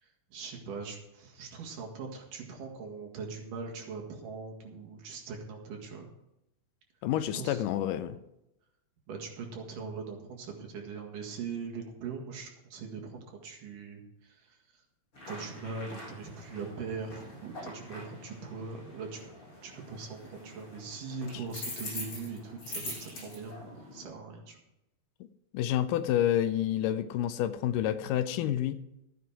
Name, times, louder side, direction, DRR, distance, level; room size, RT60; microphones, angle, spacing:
voice 1, 0.0-6.1 7.2-7.6 9.1-14.8 15.3-19.3 19.6-24.6, right 5 dB, 80° right, 1 dB, 3.5 m, -41 dB
voice 2, 7.0-8.2 25.5-28.8, left 11 dB, 85° left, 12 dB, 2.2 m, -29 dB
sound 1, 15.1-24.1, left 2 dB, 40° left, 6.2 m, -44 dB
13.5 x 9.5 x 4.8 m, 0.88 s
omnidirectional pair, 3.7 m